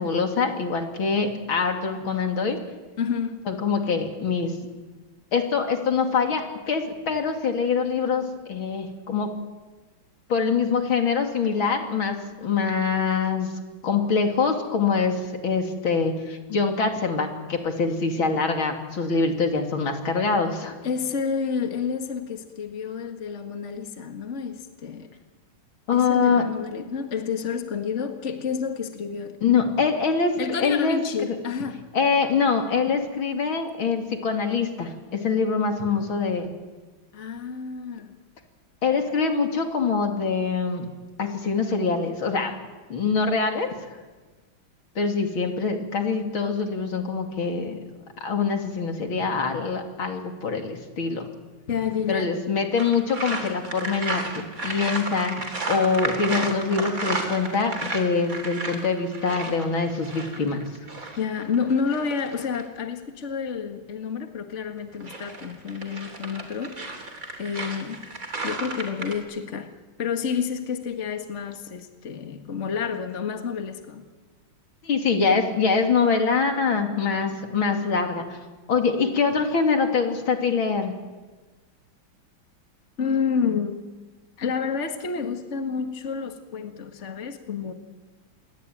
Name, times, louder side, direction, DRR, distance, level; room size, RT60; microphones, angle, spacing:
voice 1, 0.0-2.6 3.5-4.5 5.3-9.3 10.3-13.5 13.8-20.8 25.9-26.5 29.4-31.0 31.9-36.5 38.8-40.9 41.2-42.5 42.9-43.7 45.0-47.8 48.2-51.3 52.1-60.6 74.8-78.4 78.7-80.9, left 5 dB, 80° left, 4 dB, 3.6 m, -24 dB
voice 2, 3.0-3.4 20.8-25.1 25.9-29.4 30.4-31.8 37.1-38.1 51.7-52.3 61.2-66.9 67.4-68.0 68.4-69.7 70.0-74.1 83.0-83.8 84.4-87.7, left 6 dB, 35° left, 6 dB, 2.0 m, -29 dB
sound 1, 52.8-62.7 64.8-69.2, right 2 dB, 40° right, 3.8 m, -33 dB
27.5 x 22.5 x 9.3 m, 1.3 s
omnidirectional pair, 2.2 m